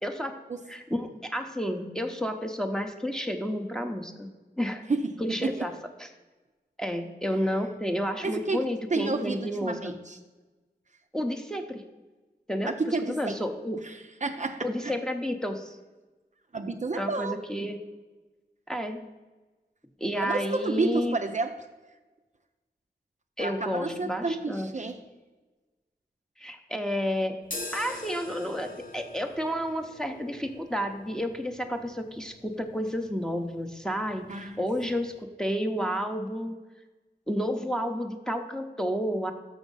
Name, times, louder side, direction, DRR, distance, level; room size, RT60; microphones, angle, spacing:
voice 1, 0.0-0.4 0.7-4.3 4.6-4.8 5.2-5.7 6.0-6.1 6.8-10.0 11.1-11.8 12.5-13.8 14.6-15.8 17.0-17.8 18.7-19.0 20.0-21.2 23.4-24.7 26.4-27.4 27.7-36.6 37.3-39.3, equal, 5° left, 4 dB, 0.6 m, -31 dB
voice 2, 8.2-8.7 8.9-10.2 12.7-13.4 13.8-14.9 16.5-17.4 20.1-21.6 23.4-25.0 34.3-34.6, right 3 dB, 45° right, 6 dB, 0.4 m, -30 dB
sound 1, 27.4-35.2, left 2 dB, 50° left, 0.9 m, -45 dB
6.3 x 6.1 x 5.3 m, 1.2 s
wide cardioid pair, 75°, 18 cm